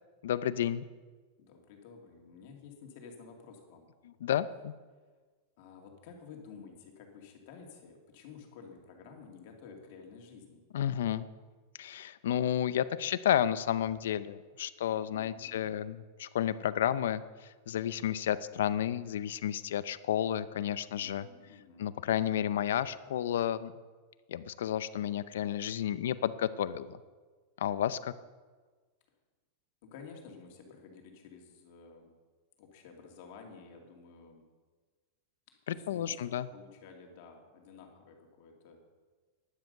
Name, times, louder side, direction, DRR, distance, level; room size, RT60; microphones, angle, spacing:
voice 1, 0.2-0.8 4.0-4.7 10.7-11.3 11.8-21.3 21.8-23.7 24.3-27.0 27.6-28.1 35.7-36.5, left 10 dB, 85° left, 15 dB, 0.6 m, -31 dB
voice 2, 1.4-3.9 5.6-10.6 15.1-15.7 21.0-21.9 29.8-32.1 32.6-34.4 35.7-38.8, left 5 dB, 45° left, 2 dB, 2.3 m, -52 dB
12.0 x 10.5 x 6.7 m, 1.4 s
supercardioid pair, 180°, 0 cm